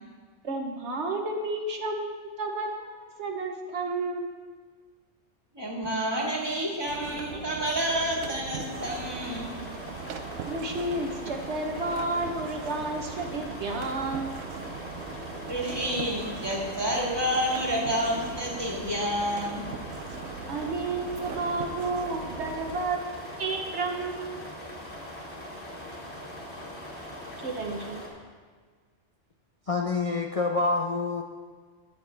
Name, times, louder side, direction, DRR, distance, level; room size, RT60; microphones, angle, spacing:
voice 1, 0.4-4.4 10.5-14.3 20.5-24.4 27.4-28.0, right 2 dB, 65° right, 2 dB, 1.3 m, -31 dB
voice 2, 5.5-9.5 15.4-19.7, equal, 20° right, -3 dB, 2.0 m, -29 dB
sound 1, 6.9-22.9, right 7 dB, 85° right, 1.0 m, -40 dB
sound 2, 8.6-28.1, left 1 dB, 10° left, 2.2 m, -41 dB
voice 3, 29.6-31.2, left 3 dB, 35° left, 0 dB, 0.6 m, -27 dB
13.0 x 9.5 x 3.4 m, 1.5 s
omnidirectional pair, 1.3 m